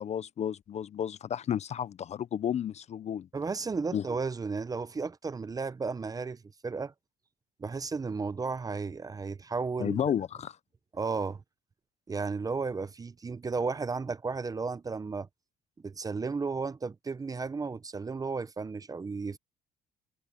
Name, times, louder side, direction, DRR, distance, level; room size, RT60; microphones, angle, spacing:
voice 1, 0.0-3.3 3.9-4.0 9.8-10.6, left 9 dB, 40° left, 0.5 m, -32 dB
voice 2, 3.3-6.9 7.6-10.0 10.9-11.4 12.1-15.3 15.8-19.4, right 4 dB, 20° right, 0.7 m, -34 dB
cardioid pair, 110°, 17 cm